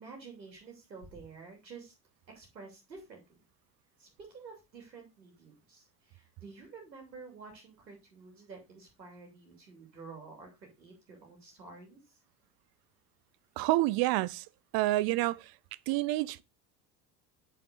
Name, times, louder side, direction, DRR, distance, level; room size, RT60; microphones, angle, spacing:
voice 1, 0.0-1.9 2.3-3.2 4.0-12.2, right 4 dB, 85° right, 3.0 m, -50 dB
voice 2, 13.6-14.5 14.7-15.5 15.9-16.4, right 18 dB, 45° right, 0.7 m, -28 dB
7.7 x 7.1 x 3.9 m
figure-of-eight pair, 70°, 50 cm